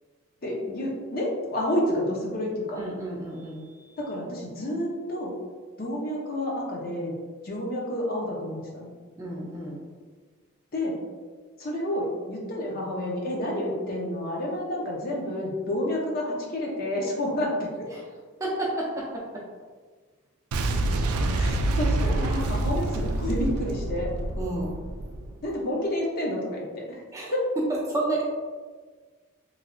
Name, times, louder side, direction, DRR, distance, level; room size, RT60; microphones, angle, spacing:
voice 1, 0.4-2.8 4.0-5.3 5.8-7.1 7.4-8.9 10.7-11.0 11.6-17.5 17.8-17.9 21.3-24.1 25.4-26.8 27.3-27.4, left 1 dB, 45° left, -2 dB, 0.6 m, -29 dB
voice 2, 2.8-3.6 9.2-9.8 13.7-13.8 17.9-18.0 18.4-19.4 24.4-24.7 27.1-27.3 27.9-28.2, right 2 dB, 15° right, -4 dB, 0.4 m, -31 dB
Boom, 20.5-25.4, right 2 dB, 80° right, 0.3 m, -27 dB
3.1 x 2.8 x 2.5 m, 1.5 s
head